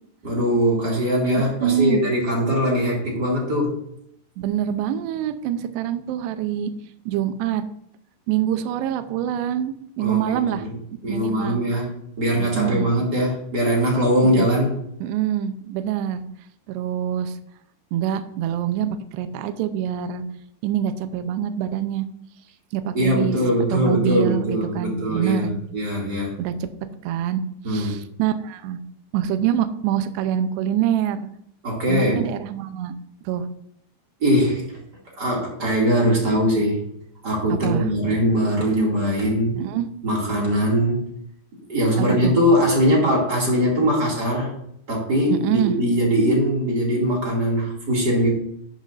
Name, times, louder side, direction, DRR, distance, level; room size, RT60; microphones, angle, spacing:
voice 1, 0.2-3.8 10.0-10.8 11.0-14.8 22.9-26.3 27.6-28.0 31.6-32.2 34.2-34.8 35.2-36.8 37.2-39.6 40.0-41.0 41.7-44.5 44.9-48.3, equal, 30° right, -3 dB, 2.0 m, -21 dB
voice 2, 1.4-2.0 4.4-6.8 7.1-7.6 8.3-10.7 11.1-11.6 12.4-12.9 14.2-14.5 15.0-16.2 16.7-17.3 17.9-20.2 20.6-22.1 22.7-23.4 23.7-25.5 26.4-26.5 27.0-27.4 27.7-28.8 29.1-31.3 31.9-32.9 33.2-33.5 37.6-37.9 39.6-39.9 42.0-42.3 45.3-45.8, right 10 dB, 90° right, 9 dB, 2.5 m, -25 dB
10.5 x 9.7 x 2.6 m, 0.71 s
omnidirectional pair, 5.6 m